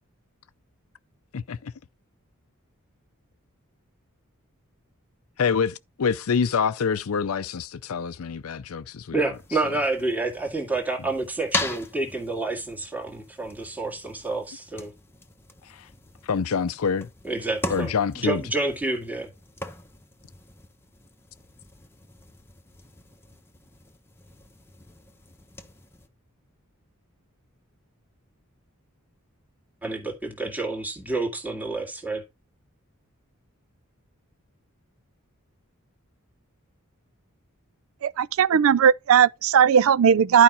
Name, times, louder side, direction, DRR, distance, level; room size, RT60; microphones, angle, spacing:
voice 1, 1.3-1.7 5.4-9.2 15.7-15.9 16.2-17.1 17.7-18.4, left 6 dB, 70° left, 0.5 m, -26 dB
voice 2, 9.1-14.9 17.2-19.3 29.8-32.2, right 2 dB, 10° right, 2.1 m, -29 dB
sound 1, 9.3-26.1, left 2 dB, 10° left, 1.1 m, -39 dB
voice 3, 38.0-40.4, right 8 dB, 65° right, 0.4 m, -18 dB
11.5 x 5.0 x 4.3 m
head